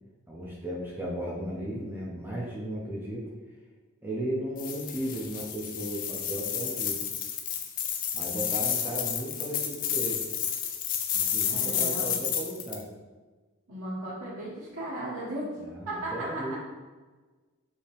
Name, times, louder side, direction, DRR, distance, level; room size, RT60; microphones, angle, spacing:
voice 1, 0.3-3.3 4.0-7.0 8.1-10.2 11.1-12.9 15.6-16.6, right 1 dB, 10° right, -5 dB, 0.6 m, -35 dB
sound 1, 4.6-12.8, left 8 dB, 40° left, 0.4 m, -31 dB
voice 2, 11.5-12.1 13.7-15.5 15.9-16.6, right 1 dB, 65° right, -9 dB, 1.1 m, -36 dB
5.4 x 2.8 x 3.4 m, 1.3 s
head